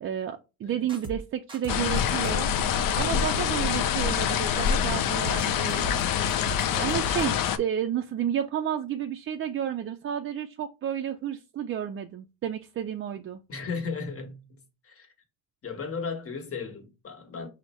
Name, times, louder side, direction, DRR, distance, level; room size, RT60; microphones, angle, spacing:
voice 1, 0.0-2.5 2.9-5.9 6.6-13.4, right 9 dB, 35° right, 0.4 m, -31 dB
sound 1, 0.9-1.2 1.5-2.4 5.2-5.4 5.7-6.0 6.3-7.2, right 1 dB, 15° right, 0.9 m, -38 dB
sound 2, 1.7-7.6, left 8 dB, 60° left, 0.6 m, -26 dB
voice 2, 13.5-15.1 15.6-17.5, left 5 dB, 35° left, 1.2 m, -36 dB
4.5 x 2.1 x 4.2 m
supercardioid pair, 75°, 37 cm